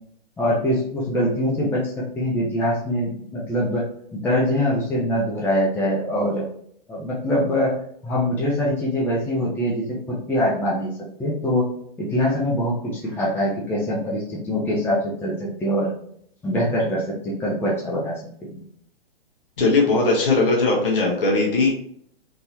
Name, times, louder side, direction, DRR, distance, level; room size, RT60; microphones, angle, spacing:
voice 1, 0.4-1.8 2.1-3.8 4.1-6.4 6.9-7.8 8.0-10.9 11.2-11.7 12.0-15.9 16.4-18.1 18.4-18.6, equal, 5° left, -5 dB, 0.6 m, -23 dB
voice 2, 19.6-21.7, left 3 dB, 60° left, -2 dB, 1.3 m, -19 dB
3.8 x 2.7 x 2.9 m, 0.66 s
figure-of-eight pair, 120°, 30 cm